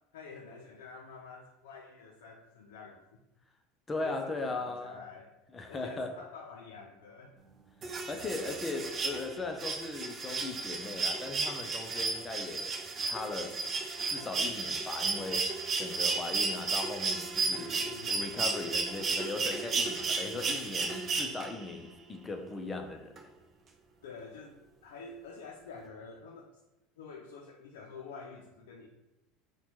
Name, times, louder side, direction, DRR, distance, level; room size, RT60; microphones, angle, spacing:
voice 1, 0.1-3.0 4.0-5.4 5.7-7.5 17.4-18.2 20.3-20.6 24.0-26.5 27.0-28.9, left 4 dB, 90° left, -1 dB, 0.4 m, -48 dB
voice 2, 3.9-5.0 5.5-6.2 8.1-13.6 14.1-23.3, left 3 dB, 20° left, 4 dB, 0.5 m, -38 dB
sound 1, 7.8-21.7 23.2-23.3, right 4 dB, 35° right, 0.4 m, -33 dB
4.1 x 2.2 x 2.9 m, 0.99 s
supercardioid pair, 110°, 0 cm